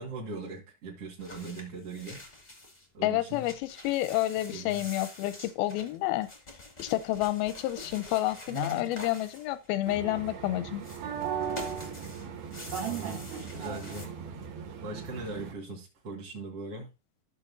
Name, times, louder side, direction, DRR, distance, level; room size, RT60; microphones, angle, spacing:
voice 1, 0.0-2.2 2.9-3.5 4.5-4.8 7.8-7.9 8.5-8.9 12.8-14.1 14.8-16.9, right 2 dB, 45° right, 2.2 m, -40 dB
sound 1, 1.2-2.9 3.2-10.2 10.8-14.1, left 2 dB, 50° left, 0.5 m, -46 dB
voice 2, 3.0-6.3 6.8-10.8, left 15 dB, 85° left, 2.2 m, -29 dB
sound 2, 9.9-15.5, right 7 dB, 65° right, 3.3 m, -37 dB
14.0 x 6.4 x 2.6 m
omnidirectional pair, 4.9 m